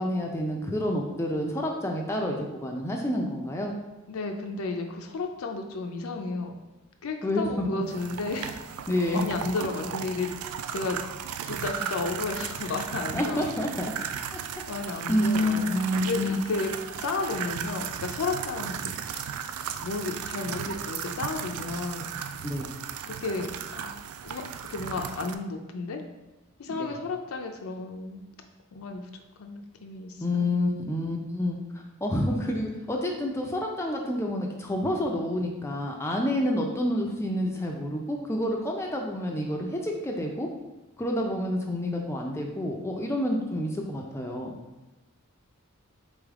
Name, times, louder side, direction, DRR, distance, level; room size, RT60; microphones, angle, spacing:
voice 1, 0.0-3.7 7.2-7.8 8.9-9.3 13.1-13.9 14.3-14.4 15.1-16.4 22.4-22.7 26.8-26.9 30.2-31.6 32.0-40.5 41.0-44.5, left 1 dB, 10° left, 1 dB, 0.4 m, -28 dB
voice 2, 4.1-6.6 7.0-8.5 9.1-10.3 10.7-11.0 11.5-13.5 14.0-14.1 14.7-15.7 16.0-19.2 19.8-22.1 23.0-23.9 24.2-26.0 26.6-28.2 28.7-29.0 29.4-30.5, left 3 dB, 75° left, 4 dB, 0.5 m, -33 dB
sound 1, 7.9-25.3, right 8 dB, 80° right, 0.3 m, -36 dB
3.9 x 3.4 x 3.5 m, 1.1 s
head